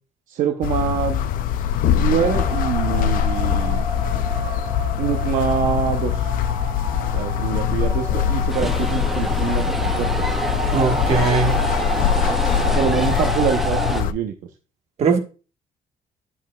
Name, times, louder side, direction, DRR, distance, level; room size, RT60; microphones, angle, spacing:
voice 1, 0.3-1.3 2.0-3.8 5.0-6.3 7.1-10.3 12.7-14.3, right 8 dB, 70° right, 0.7 m, -25 dB
sound 1, 0.6-14.1, left 9 dB, 80° left, 0.4 m, -22 dB
sound 2, 2.2-14.0, right 3 dB, 35° right, 2.9 m, -30 dB
sound 3, 8.5-14.0, right 1 dB, ahead, 0.6 m, -29 dB
voice 2, 10.7-11.6 15.0-15.2, right 5 dB, 50° right, 1.4 m, -19 dB
9.8 x 7.1 x 2.3 m
cardioid pair, 155°, 14 cm